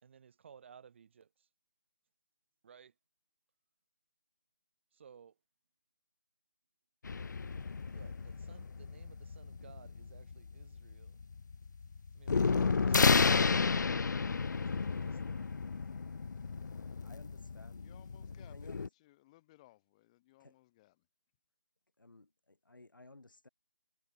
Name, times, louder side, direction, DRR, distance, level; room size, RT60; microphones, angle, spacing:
voice 1, 0.0-1.5 2.6-2.9 4.9-5.4 7.9-11.2 12.1-15.5, right 7 dB, 35° right, 2.2 m, -58 dB
sound 1, 7.0-18.9, left 5 dB, 65° left, 0.5 m, -32 dB
voice 2, 17.0-17.9 18.5-18.9 20.4-20.5 22.0-23.5, left 2 dB, 80° left, 4.8 m, -57 dB
voice 3, 17.7-21.1, left 18 dB, 20° left, 4.8 m, -63 dB
figure-of-eight pair, 160°, 11 cm